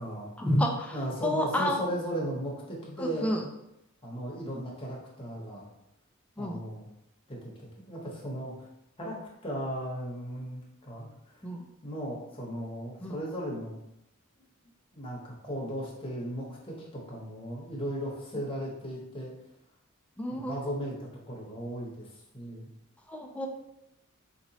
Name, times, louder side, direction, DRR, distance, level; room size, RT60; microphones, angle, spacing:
voice 1, 0.4-1.8 3.0-3.4 6.4-6.6 11.4-11.6 13.0-13.1 20.2-20.7 23.1-23.5, equal, 5° left, 0 dB, 0.4 m, -30 dB
voice 2, 0.9-3.3 4.0-5.6 6.4-6.9 7.3-8.5 9.0-9.2 9.4-11.3 11.8-13.8 14.9-19.3 20.4-22.1 22.3-22.7, equal, 25° left, -3 dB, 1.0 m, -36 dB
4.3 x 2.9 x 2.7 m, 0.84 s
head